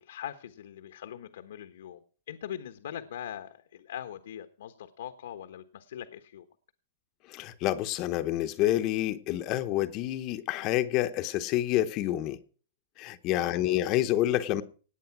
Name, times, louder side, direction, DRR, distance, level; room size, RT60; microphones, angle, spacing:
voice 1, 0.0-2.0 2.3-6.5 13.4-13.7, left 10 dB, 80° left, 1.1 m, -41 dB
voice 2, 7.3-12.4 13.0-14.6, left 14 dB, 30° left, 0.8 m, -28 dB
18.0 x 8.4 x 5.9 m
supercardioid pair, 160°, 0 cm